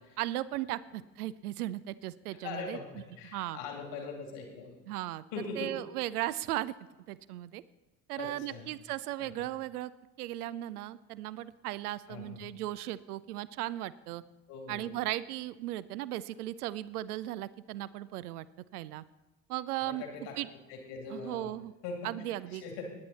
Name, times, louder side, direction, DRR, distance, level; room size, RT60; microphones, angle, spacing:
voice 1, 0.2-2.8 3.3-3.6 4.9-5.2 5.6-6.7 7.1-7.6 8.1-9.9 10.2-14.2 14.7-18.5 18.7-19.0 19.5-20.0 20.4-20.5 21.1-21.7 22.0-22.9, right 15 dB, 70° right, 17 dB, 0.6 m, -36 dB
voice 2, 2.4-4.8 5.3-5.7 8.2-8.7 9.2-9.5 12.1-12.5 14.5-14.9 19.8-20.3 20.7-21.5 21.8-22.9, left 4 dB, 60° left, 1 dB, 2.9 m, -41 dB
17.5 x 10.0 x 4.2 m, 1.1 s
figure-of-eight pair, 55°, 47 cm